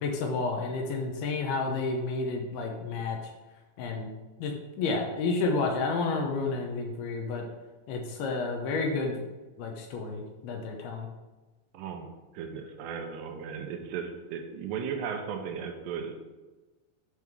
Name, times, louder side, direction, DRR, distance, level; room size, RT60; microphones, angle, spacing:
voice 1, 0.0-3.2 3.8-4.1 4.4-7.4 7.9-9.2 9.6-11.1, left 3 dB, 75° left, 2 dB, 2.6 m, -30 dB
voice 2, 11.7-12.1 12.3-16.2, right 6 dB, 80° right, 4 dB, 2.8 m, -36 dB
9.6 x 3.5 x 6.0 m, 1.2 s
omnidirectional pair, 4.9 m